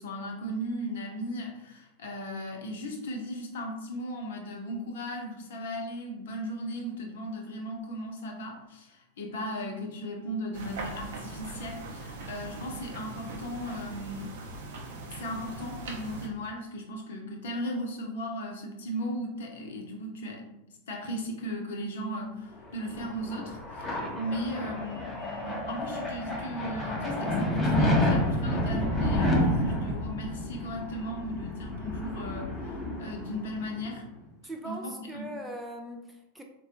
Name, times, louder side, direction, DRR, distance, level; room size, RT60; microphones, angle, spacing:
voice 1, 0.0-14.3 15.1-34.0 34.6-35.3, equal, 60° left, 1 dB, 0.7 m, -37 dB
sound 1, 10.5-16.3, right 3 dB, 55° right, 0.6 m, -41 dB
sound 2, 22.7-33.9, left 1 dB, 15° left, 0.7 m, -30 dB
voice 2, 34.4-36.4, right 1 dB, 5° right, 2 dB, 0.4 m, -40 dB
4.1 x 2.2 x 2.8 m, 0.89 s
figure-of-eight pair, 90°, 0 cm